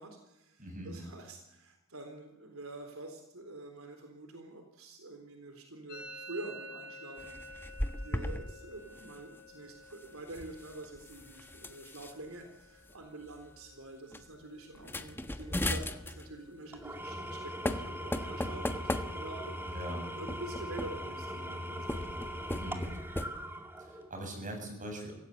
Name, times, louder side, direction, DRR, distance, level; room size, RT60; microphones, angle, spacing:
voice 1, 0.0-7.3 8.0-19.8 20.1-22.5, right 2 dB, 80° right, 4 dB, 3.7 m, -46 dB
voice 2, 0.6-1.1 19.6-20.1 22.5-22.9 23.8-25.1, right 1 dB, 40° right, 4 dB, 7.6 m, -41 dB
Musical instrument, 5.9-13.5 13.8-14.4 14.6-15.2 15.5-17.5, equal, 50° left, 6.5 m, -52 dB
sound 1, 7.2-8.5 8.7-9.1 10.2-12.1 12.9-13.0 13.3-13.6 14.1-14.2 14.7-16.3 17.2-17.4 17.6-19.5 20.3-21.2 21.8-23.3, left 1 dB, 10° left, 1.2 m, -37 dB
Engine / Tools, 16.7-24.2, equal, 10° right, 2.4 m, -40 dB
25.0 x 16.5 x 8.3 m, 0.93 s
head